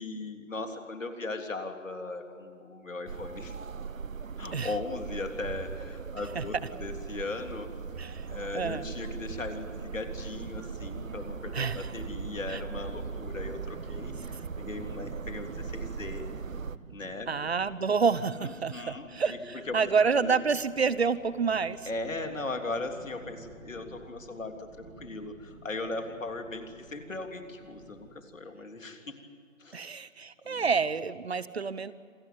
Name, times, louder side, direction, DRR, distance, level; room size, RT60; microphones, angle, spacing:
voice 1, 0.0-3.5 4.4-7.7 8.3-16.3 16.9-17.3 18.4-19.9 20.2-20.4 21.8-29.2 29.6-29.8 30.4-30.7, left 2 dB, 75° left, 5 dB, 3.5 m, -38 dB
sound 1, 3.1-16.8, right 5 dB, 80° right, 1.1 m, -39 dB
voice 2, 8.5-8.8 11.5-11.9 12.5-12.6 17.3-21.8 29.7-31.9, right 5 dB, 50° right, 16 dB, 1.1 m, -28 dB
sound 2, 9.0-28.1, right 3 dB, 20° right, 2.9 m, -52 dB
27.5 x 16.0 x 9.5 m, 2.2 s
figure-of-eight pair, 160°, 39 cm